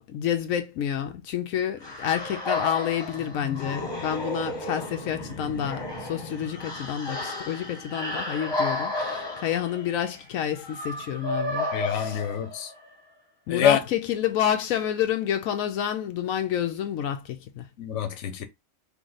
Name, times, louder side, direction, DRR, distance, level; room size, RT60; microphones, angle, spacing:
voice 1, 0.0-12.2 13.5-17.7, left 10 dB, 85° left, 1.0 m, -29 dB
sound 1, 1.8-12.9, left 2 dB, 20° left, 1.3 m, -33 dB
voice 2, 11.7-12.7 13.5-13.8 17.8-18.4, left 9 dB, 65° left, 1.1 m, -25 dB
4.7 x 2.7 x 3.9 m
omnidirectional pair, 1.4 m